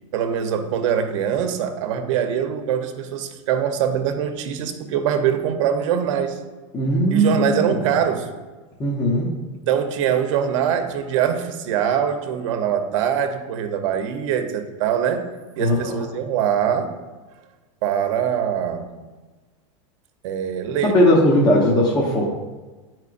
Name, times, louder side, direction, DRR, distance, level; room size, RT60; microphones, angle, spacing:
voice 1, 0.1-6.4 7.1-8.3 9.7-15.3 15.6-16.9 17.8-18.9 20.2-21.0, right 8 dB, 70° right, 7 dB, 0.8 m, -23 dB
voice 2, 6.7-7.9 8.8-9.4 15.6-16.0 20.8-22.3, equal, 25° left, -4 dB, 1.0 m, -19 dB
9.7 x 4.4 x 2.5 m, 1.3 s
supercardioid pair, 130°, 17 cm